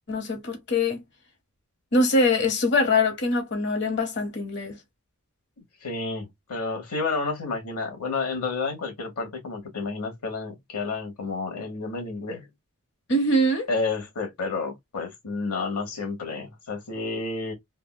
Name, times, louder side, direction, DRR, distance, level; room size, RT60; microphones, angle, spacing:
voice 1, 0.1-1.0 1.9-4.8 13.1-13.7, left 2 dB, 55° left, 1.0 m, -23 dB
voice 2, 5.8-12.5 13.7-17.5, left 3 dB, 85° left, 1.1 m, -30 dB
3.4 x 2.2 x 2.2 m
head